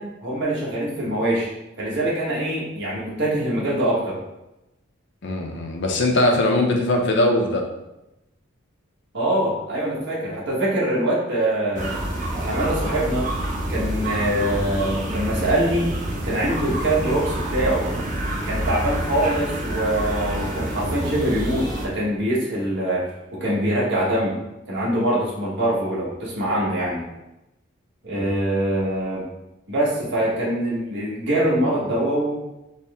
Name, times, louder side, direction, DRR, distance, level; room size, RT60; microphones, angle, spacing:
voice 1, 0.0-1.5 1.8-4.2 9.1-11.9 12.4-13.3 13.7-15.9 16.2-17.8 18.4-24.3 24.7-27.0 28.0-29.2 29.7-32.4, right 1 dB, 60° right, -6 dB, 1.3 m, -23 dB
voice 2, 5.2-7.6 28.1-28.3, left 1 dB, 60° left, 2 dB, 0.6 m, -21 dB
sound 1, 11.7-21.9, right 1 dB, 40° right, 0.7 m, -27 dB
4.2 x 2.1 x 3.4 m, 0.92 s
head